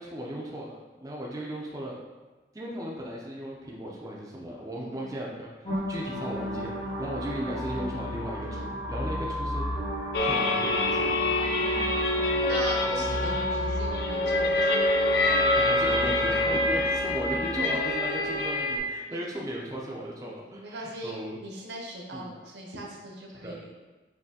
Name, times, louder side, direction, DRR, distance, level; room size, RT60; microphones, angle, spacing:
voice 1, 0.0-2.0 2.5-9.6 10.2-11.2 15.5-21.4 22.1-22.3 23.4-23.6, equal, 20° right, -3 dB, 0.4 m, -36 dB
sound 1, 5.6-17.6, equal, 40° left, 1.2 m, -34 dB
sound 2, 10.1-18.8, left 2 dB, 60° left, 0.4 m, -26 dB
voice 2, 11.4-12.1 12.5-14.8 19.1-19.2 20.6-23.9, right 1 dB, 75° right, -1 dB, 0.8 m, -40 dB
5.5 x 2.7 x 2.7 m, 1.2 s
head